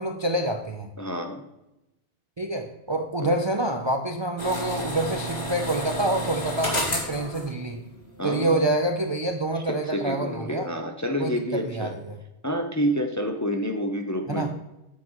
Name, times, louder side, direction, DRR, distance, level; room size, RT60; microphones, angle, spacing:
voice 1, 0.0-0.9 2.4-7.8 8.2-10.7 11.2-11.9 14.3-14.5, right 1 dB, 35° right, 4 dB, 0.5 m, -27 dB
voice 2, 1.0-1.4 3.2-3.3 8.2-8.6 9.5-11.9 12.4-14.5, equal, 20° left, 4 dB, 0.5 m, -28 dB
sound 1, 4.4-8.4 8.7-8.8, equal, 65° left, 2.6 m, -31 dB
9.3 x 7.6 x 3.0 m, 0.92 s
omnidirectional pair, 1.2 m